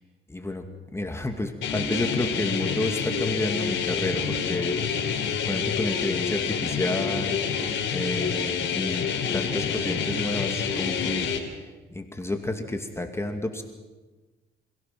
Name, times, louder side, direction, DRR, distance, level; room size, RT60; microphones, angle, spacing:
voice 1, 0.3-0.6 0.9-5.2 5.5-7.4 7.9-9.0 9.3-11.3 11.9-13.6, left 2 dB, 15° left, 4 dB, 2.3 m, -30 dB
sound 1, 1.6-11.4, left 6 dB, 75° left, 3.6 m, -28 dB
28.0 x 16.5 x 6.0 m, 1.2 s
cardioid pair, 90°, 20 cm